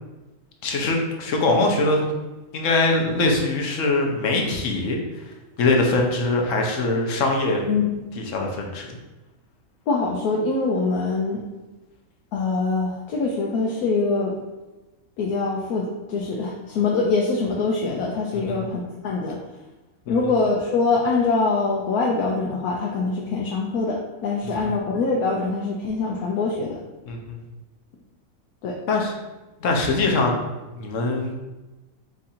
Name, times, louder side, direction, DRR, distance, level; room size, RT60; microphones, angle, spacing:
voice 1, 0.6-2.1 2.5-5.0 5.6-7.7 8.2-8.9 18.3-18.6 24.6-24.7 27.1-27.4 28.9-29.1 29.6-30.5 30.7-31.3, left 2 dB, 65° left, 1 dB, 1.0 m, -22 dB
voice 2, 7.7-8.0 9.9-11.4 12.3-14.3 15.2-19.4 20.1-26.8 28.6-28.8, left 3 dB, 85° left, -2 dB, 1.1 m, -24 dB
4.7 x 2.5 x 4.2 m, 1.1 s
omnidirectional pair, 1.5 m